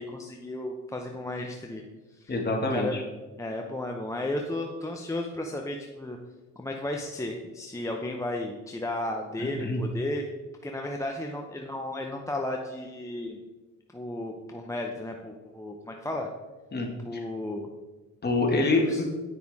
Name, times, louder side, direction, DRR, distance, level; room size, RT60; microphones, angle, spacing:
voice 1, 0.0-1.8 2.1-2.3 2.7-3.0 3.4-6.2 6.6-10.2 10.6-13.4 13.9-16.3 17.0-17.7 18.9-19.0, left 1 dB, 10° left, 1 dB, 0.7 m, -34 dB
voice 2, 2.3-3.0 9.4-9.8 16.7-17.2 18.2-19.0, left 2 dB, 35° left, 0 dB, 1.9 m, -26 dB
9.5 x 5.6 x 3.6 m, 1.2 s
cardioid pair, 90°, 30 cm